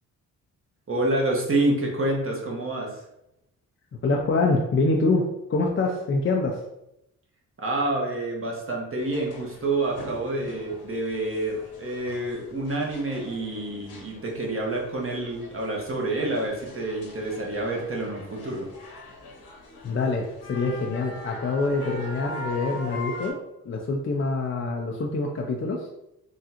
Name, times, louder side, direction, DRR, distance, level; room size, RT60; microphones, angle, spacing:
voice 1, 0.9-3.0 7.6-18.7, right 2 dB, 35° right, -1 dB, 1.2 m, -28 dB
voice 2, 4.0-6.6 19.8-23.4 23.6-25.9, left 3 dB, 35° left, 0 dB, 0.5 m, -25 dB
sound 1, 9.0-23.3, left 1 dB, 75° left, 1.2 m, -41 dB
3.6 x 2.3 x 2.9 m, 0.83 s
hypercardioid pair, 45°, 39 cm